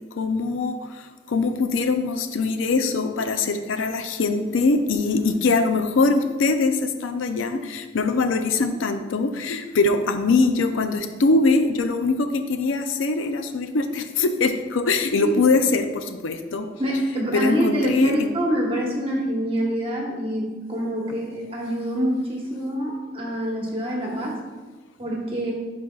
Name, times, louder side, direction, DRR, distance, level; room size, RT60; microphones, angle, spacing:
voice 1, 0.1-16.7 17.3-18.3, left 3 dB, 80° left, 7 dB, 0.5 m, -22 dB
voice 2, 16.8-24.4 25.0-25.5, equal, 30° right, -2 dB, 1.2 m, -26 dB
10.5 x 4.2 x 2.3 m, 1.3 s
head